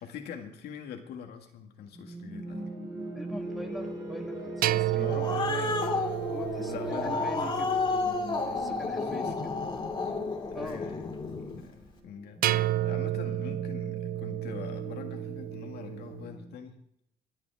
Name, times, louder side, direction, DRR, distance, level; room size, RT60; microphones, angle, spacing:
voice 1, 0.0-2.7 5.0-5.9 6.6-7.6 8.8-9.3 10.5-11.1 11.4-12.4 12.8-16.7, left 7 dB, 70° left, 4 dB, 2.0 m, -43 dB
sound 1, 1.9-16.6, right 2 dB, 25° right, 4.9 m, -41 dB
voice 2, 3.1-5.8 6.3-7.8 8.5-9.5 10.5-10.8, equal, ahead, 3 dB, 1.5 m, -42 dB
sound 2, 4.6-8.9 12.4-16.3, right 15 dB, 60° right, 0.4 m, -32 dB
Growling, 4.8-11.6, left 4 dB, 25° left, 2.3 m, -31 dB
23.5 x 8.7 x 3.5 m, 0.75 s
cardioid pair, 110°, 17 cm